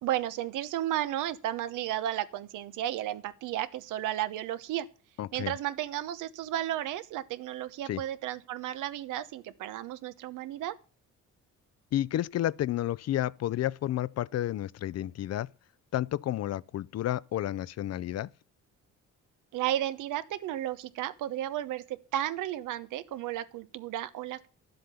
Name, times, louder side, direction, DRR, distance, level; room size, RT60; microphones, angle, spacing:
voice 1, 0.0-4.9 5.3-10.7 19.5-24.5, right 12 dB, 90° right, 1.0 m, -33 dB
voice 2, 5.2-5.5 7.9-8.0 11.9-15.5 15.9-18.3, left 13 dB, 55° left, 0.5 m, -31 dB
11.0 x 7.9 x 6.9 m
cardioid pair, 90°, 30 cm